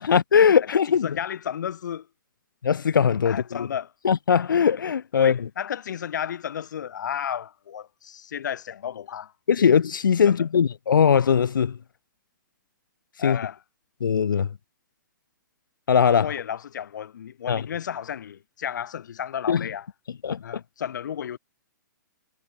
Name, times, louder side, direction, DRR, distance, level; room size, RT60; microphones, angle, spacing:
voice 1, 0.0-1.2 2.6-3.7 4.0-5.5 9.5-11.8 13.2-13.4 14.0-14.5 15.9-16.3 17.5-17.7 19.5-19.7 20.2-20.6, left 7 dB, 90° left, 1.1 m, -20 dB
voice 2, 1.0-2.1 3.2-3.9 5.1-9.3 10.2-10.4 13.2-13.6 16.2-19.9 20.4-21.4, left 9 dB, 65° left, 2.6 m, -33 dB
hypercardioid pair, 155°, 11 cm